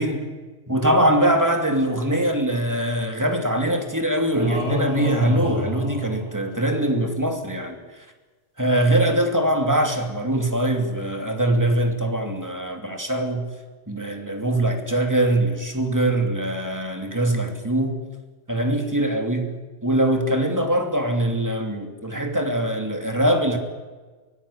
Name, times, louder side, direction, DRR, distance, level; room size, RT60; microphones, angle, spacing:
voice 1, 0.7-7.8 8.6-13.5 13.9-18.0 18.5-19.5 19.8-23.6, right 1 dB, 15° right, 2.6 m, -22 dB
sound 1, 4.3-6.8, left 1 dB, 70° left, 5.2 m, -28 dB
23.5 x 17.5 x 8.6 m
omnidirectional pair, 1.2 m